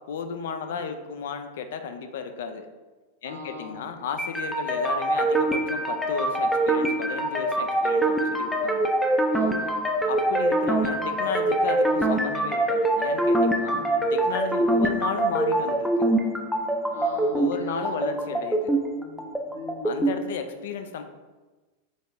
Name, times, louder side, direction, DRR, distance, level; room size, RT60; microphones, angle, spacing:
voice 1, 0.1-2.7 3.2-8.9 10.1-16.1 17.3-18.8 19.8-21.0, left 6 dB, 55° left, 7 dB, 0.4 m, -34 dB
voice 2, 3.2-3.9 9.3-9.8 13.6-14.1 16.9-18.3 18.9-19.1 19.5-20.0, left 1 dB, 75° right, -1 dB, 1.1 m, -40 dB
sound 1, 4.2-20.2, right 1 dB, ahead, 0.4 m, -24 dB
4.0 x 3.7 x 3.3 m, 1.2 s
figure-of-eight pair, 90°, 0 cm